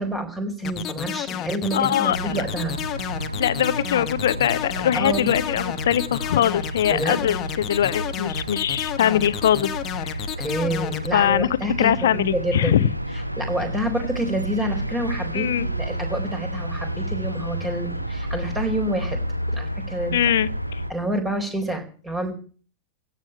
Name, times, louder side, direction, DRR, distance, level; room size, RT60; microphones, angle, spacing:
voice 1, 0.0-2.7 3.1-3.2 4.9-5.3 6.9-7.2 10.4-12.8 13.4-19.2 19.5-20.1 20.9-22.3, right 1 dB, 10° right, 4.2 m, -28 dB
sound 1, 0.6-11.1, left 11 dB, 30° left, 1.0 m, -31 dB
voice 2, 1.7-2.4 3.3-9.7 10.0-10.2 11.1-11.5 11.8-12.9 15.3-15.7 20.1-20.8, left 10 dB, 60° left, 0.8 m, -22 dB
sound 2, 2.0-20.9, equal, 90° right, 1.0 m, -31 dB
16.0 x 7.3 x 8.8 m
figure-of-eight pair, 90°, 0 cm